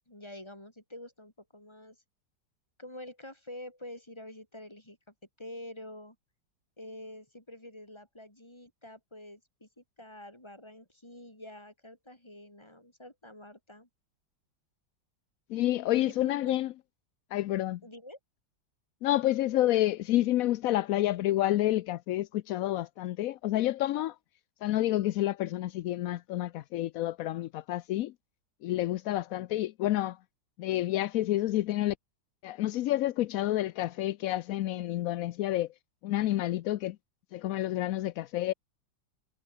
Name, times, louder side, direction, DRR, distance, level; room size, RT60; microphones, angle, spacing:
voice 1, 0.1-2.0 2.8-6.2 6.8-13.9 16.0-16.6 17.8-18.2, left 1 dB, 15° left, 4.7 m, -47 dB
voice 2, 15.5-16.7 17.3-17.8 19.0-24.2 24.6-28.1 28.6-30.2 30.6-32.0 32.4-35.7 36.0-37.0 37.3-38.5, left 14 dB, 75° left, 0.8 m, -29 dB
omnidirectional pair, 2.0 m